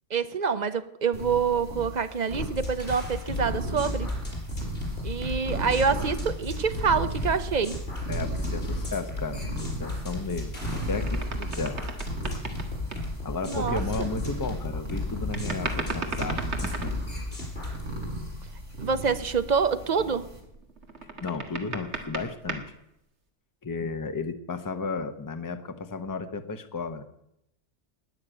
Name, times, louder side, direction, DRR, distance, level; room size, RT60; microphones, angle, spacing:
voice 1, 0.1-4.1 5.0-7.8 13.5-14.1 18.8-20.3, right 6 dB, 40° right, 11 dB, 0.9 m, -26 dB
sound 1, 1.1-20.4, equal, 85° right, 3.7 m, -35 dB
sound 2, 2.4-17.8, left 2 dB, 50° left, 5.2 m, -35 dB
voice 2, 8.1-11.8 12.3-12.4 13.2-16.9 21.2-22.6 23.6-27.0, left 4 dB, 20° left, 8 dB, 0.8 m, -34 dB
sound 3, 10.5-13.1 15.3-17.3 20.4-22.7, right 3 dB, 65° right, 2.0 m, -36 dB
20.0 x 6.6 x 8.9 m, 0.82 s
omnidirectional pair, 1.2 m